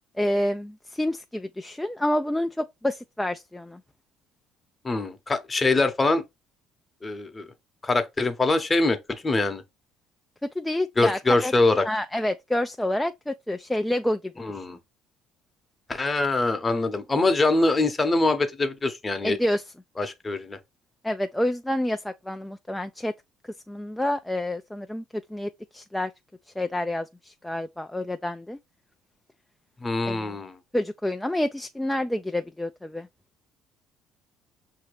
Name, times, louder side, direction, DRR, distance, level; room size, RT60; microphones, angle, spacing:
voice 1, 0.2-3.8 10.6-11.5 11.8-14.6 19.2-19.6 21.0-23.1 23.4-26.1 26.6-28.6 30.0-30.4 30.7-33.1, left 1 dB, 5° left, 0.4 m, -28 dB
voice 2, 4.8-6.2 7.0-7.5 7.8-9.6 11.0-11.9 14.4-14.8 15.9-19.4 20.0-20.6 29.8-30.6, left 2 dB, 20° left, 0.9 m, -24 dB
5.7 x 2.8 x 3.2 m
cardioid pair, 105°, 0 cm